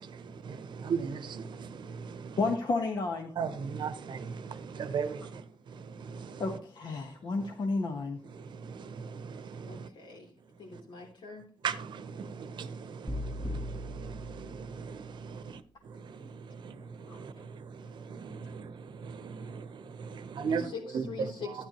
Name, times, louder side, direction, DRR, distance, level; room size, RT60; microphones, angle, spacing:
voice 1, 0.0-2.4 3.4-5.4 5.8-6.4 8.4-9.9 11.6-15.4 16.1-21.1, right 6 dB, 70° right, 0.8 m, -38 dB
voice 2, 2.4-3.3 6.4-8.2, left 3 dB, 60° left, 1.2 m, -31 dB
voice 3, 9.6-10.3 10.6-11.5 17.1-17.2 20.4-21.7, left 5 dB, 75° left, 3.4 m, -43 dB
sound 1, 13.1-15.2, left 1 dB, 5° left, 1.0 m, -39 dB
11.5 x 9.7 x 3.0 m
cardioid pair, 110°, 8 cm